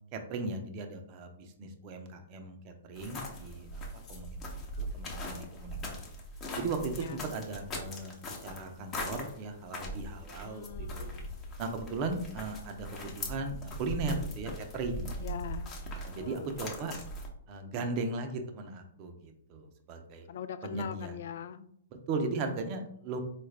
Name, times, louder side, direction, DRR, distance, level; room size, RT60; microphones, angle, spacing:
voice 1, 0.1-3.7 4.1-4.4 4.8-6.0 6.6-8.2 8.4-11.1 11.6-15.1 16.1-16.9 17.5-20.3 20.6-21.1 21.9-23.2, right 3 dB, 40° right, 5 dB, 0.6 m, -37 dB
sound 1, 3.0-17.3, equal, 25° left, 0.8 m, -40 dB
voice 2, 6.9-7.3 10.4-11.4 15.2-15.8 16.1-16.6 20.3-21.7, left 8 dB, 65° left, 11 dB, 0.3 m, -42 dB
4.0 x 2.5 x 3.3 m, 0.69 s
hypercardioid pair, 125°, 0 cm